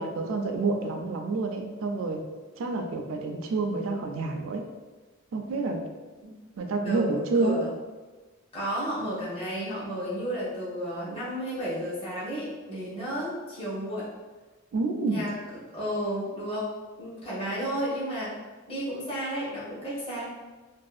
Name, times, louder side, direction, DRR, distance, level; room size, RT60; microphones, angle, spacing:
voice 1, 0.0-2.2 2.6-4.7 5.3-5.8 6.6-7.6 14.7-15.2, right 3 dB, 70° right, 4 dB, 0.4 m, -28 dB
voice 2, 6.8-7.7 8.5-14.1 15.1-15.4 15.7-16.7 17.0-18.4 18.7-20.2, equal, 25° left, -8 dB, 0.8 m, -32 dB
2.6 x 2.4 x 2.4 m, 1.3 s
head